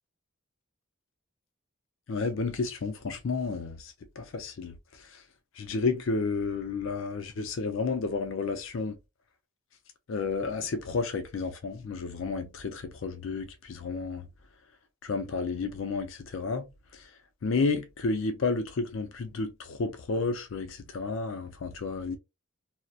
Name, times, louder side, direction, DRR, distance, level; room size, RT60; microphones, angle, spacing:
voice 1, 2.1-4.7 5.6-9.0 10.1-14.3 15.0-16.6 16.9-17.0 17.4-22.2, left 4 dB, 65° left, 0.4 m, -31 dB
2.7 x 2.0 x 2.3 m
head